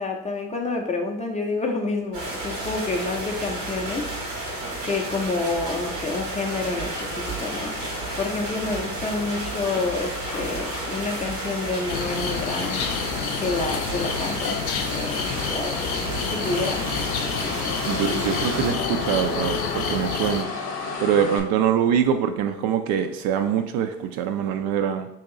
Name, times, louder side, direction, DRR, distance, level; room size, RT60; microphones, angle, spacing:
voice 1, 0.0-4.5 4.8-7.7 8.2-12.9 13.4-16.8, left 3 dB, 15° left, 1 dB, 0.4 m, -29 dB
sound 1, 2.1-18.7, right 2 dB, 80° right, 1.4 m, -32 dB
Motor vehicle (road), 6.6-21.4, left 4 dB, 35° left, 0.9 m, -34 dB
sound 2, 11.9-20.4, left 7 dB, 80° left, 0.5 m, -30 dB
voice 2, 17.9-20.5 21.0-25.1, right 8 dB, 60° right, 8 dB, 0.5 m, -24 dB
2.9 x 2.8 x 3.6 m, 0.78 s
hypercardioid pair, 75°, 43 cm